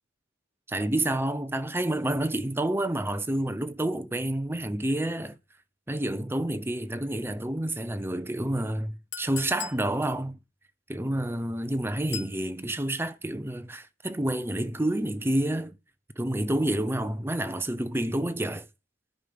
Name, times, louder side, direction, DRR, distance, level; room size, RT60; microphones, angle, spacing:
voice 1, 0.7-5.4 5.9-10.4 10.9-15.8 16.2-18.7, right 1 dB, 10° right, 0.7 m, -29 dB
Chink clink, 9.1-9.9 12.1-12.4, left 10 dB, 65° left, 0.9 m, -38 dB
10.0 x 5.2 x 7.9 m
head